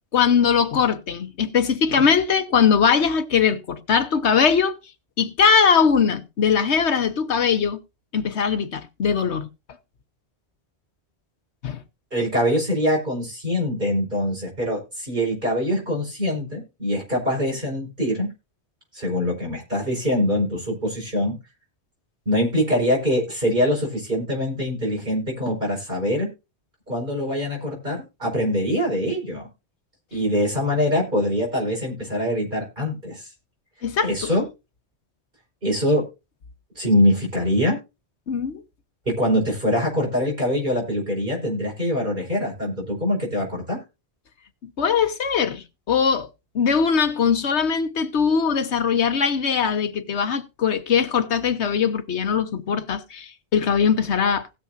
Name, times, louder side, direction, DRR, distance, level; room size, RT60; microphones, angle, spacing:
voice 1, 0.1-4.8 5.2-7.8 8.1-9.5 11.6-11.8 33.8-34.3 38.3-38.6 44.6-46.3 46.5-54.5, left 6 dB, 85° left, 1.3 m, -21 dB
voice 2, 12.1-18.3 18.9-21.4 22.2-26.3 26.9-29.5 30.1-33.3 34.0-34.4 35.6-36.0 36.7-37.8 39.0-43.8, equal, 45° right, 5.0 m, -23 dB
19.0 x 7.0 x 2.5 m
omnidirectional pair, 1.1 m